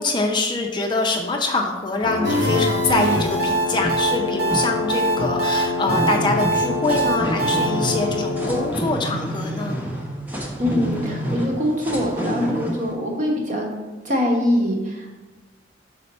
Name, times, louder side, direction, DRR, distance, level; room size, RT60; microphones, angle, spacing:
voice 1, 0.0-9.8, left 3 dB, 25° left, 2 dB, 0.5 m, -24 dB
sound 1, 2.0-8.8, left 4 dB, 85° left, 0.6 m, -26 dB
sound 2, 2.2-12.9, right 1 dB, 10° right, 0.8 m, -29 dB
sound 3, 2.2-7.7, right 3 dB, 70° right, 1.3 m, -23 dB
voice 2, 10.6-13.7 14.0-15.2, left 1 dB, 40° right, 0 dB, 1.1 m, -23 dB
5.6 x 4.2 x 4.1 m, 1.1 s
head